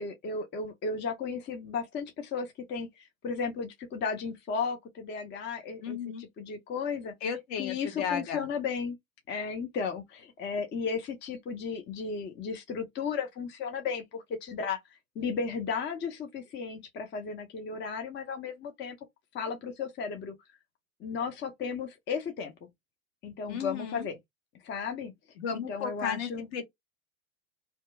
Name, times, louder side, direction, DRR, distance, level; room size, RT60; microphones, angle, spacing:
voice 1, 0.0-7.1 7.6-9.0 9.3-19.0 19.3-20.3 21.0-22.5 23.2-24.2 24.6-25.1 25.5-26.5, left 5 dB, 25° left, 0.6 m, -34 dB
voice 2, 5.8-6.2 7.2-8.5 23.5-24.1 25.4-26.6, left 7 dB, 55° left, 1.2 m, -34 dB
2.8 x 2.2 x 3.2 m
hypercardioid pair, 95°, 43 cm